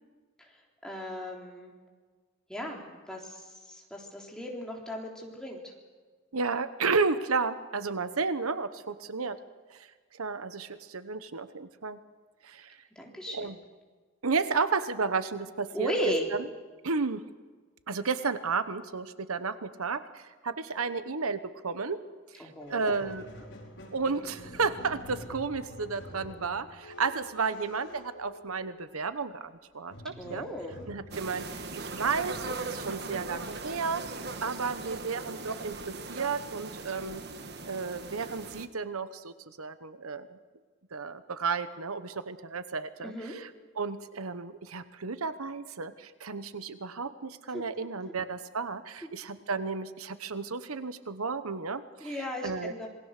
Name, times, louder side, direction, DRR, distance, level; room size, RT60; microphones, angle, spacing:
voice 1, 0.8-1.7 2.5-5.7 13.0-13.6 15.7-16.3 22.4-23.0 30.2-30.8 43.0-43.4 47.5-47.6 52.0-52.9, equal, 5° left, -1 dB, 3.6 m, -36 dB
voice 2, 6.3-9.4 9.7-12.0 12.4-12.8 13.3-13.6 14.2-15.9 16.3-16.4 16.8-17.2 17.9-22.0 22.3-23.5 23.9-30.4 30.9-37.2 37.6-40.4 40.9-52.2 52.4-52.7, right 4 dB, 85° right, 12 dB, 1.1 m, -33 dB
Squeak, 22.6-29.0 29.9-35.1, left 1 dB, 55° left, 5.4 m, -49 dB
sound 1, 31.1-38.7, right 3 dB, 50° right, 1.5 m, -39 dB
27.0 x 20.5 x 6.6 m, 1.5 s
head